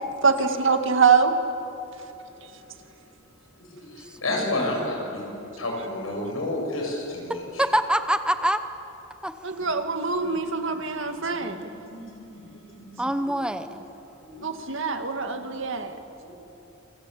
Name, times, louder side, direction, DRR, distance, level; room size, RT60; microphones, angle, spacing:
voice 1, 0.2-1.3 6.3-6.4 9.4-11.6 14.4-16.0, right 5 dB, 65° right, 6 dB, 2.1 m, -24 dB
voice 2, 3.7-5.3 5.6-7.6 9.6-9.7 10.2-10.3 10.6-10.8 11.2-13.3 14.2-14.5 15.3-15.4 15.7-15.9 16.2-16.3, left 1 dB, 85° left, 0 dB, 7.9 m, -32 dB
voice 3, 4.3-4.7 7.6-8.6 9.2-9.3 13.0-13.8, right 1 dB, 5° right, 9 dB, 0.8 m, -25 dB
27.0 x 24.5 x 8.5 m, 2.9 s
head